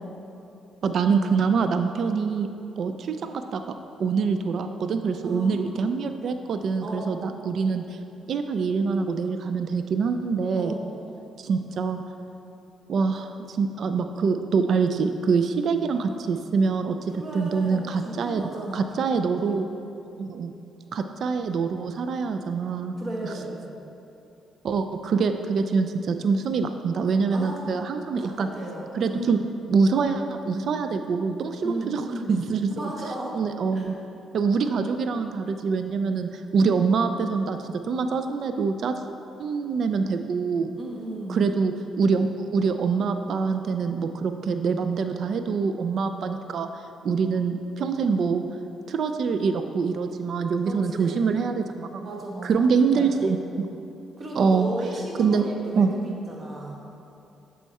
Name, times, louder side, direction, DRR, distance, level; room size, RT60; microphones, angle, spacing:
voice 1, 0.8-2.5 2.8-3.6 4.0-7.8 8.3-10.8 11.4-12.0 12.9-18.4 18.7-19.7 20.2-20.5 20.9-23.0 24.6-28.5 28.9-29.4 29.7-32.0 32.3-32.9 33.3-34.0 34.3-38.9 39.4-40.8 41.3-46.7 47.0-48.4 48.9-51.9 52.4-53.7 54.4-54.7 55.2-55.4 55.8-55.9, right 5 dB, 60° right, 8 dB, 0.3 m, -25 dB
voice 2, 5.2-6.2 6.8-7.1 10.6-11.0 17.1-19.6 22.9-23.7 27.3-27.7 28.2-29.5 31.6-32.4 32.7-33.4 33.7-33.9 40.7-41.5 50.6-51.2 52.0-52.5 52.9-53.3 54.2-56.8, right 1 dB, 40° right, -2 dB, 1.2 m, -35 dB
7.1 x 4.3 x 4.1 m, 2.8 s
cardioid pair, 90°, 0 cm